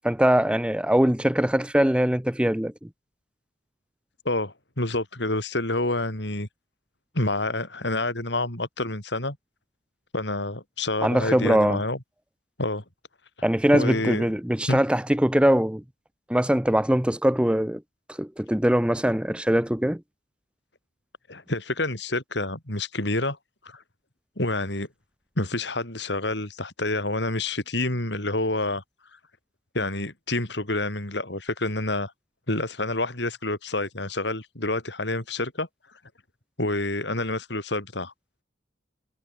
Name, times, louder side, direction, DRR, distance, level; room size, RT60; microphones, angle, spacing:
voice 1, 0.0-2.9 11.0-11.8 13.4-15.8 16.3-17.8 18.2-20.0, equal, 5° right, 0.7 m, -22 dB
voice 2, 4.2-6.5 7.1-9.4 10.1-12.0 12.6-12.8 13.7-14.2 14.7-14.8 21.3-23.4 23.6-23.8 24.4-24.9 25.4-28.8 29.7-32.1 32.5-35.7 36.6-38.1, left 2 dB, 65° left, 5.0 m, -28 dB
head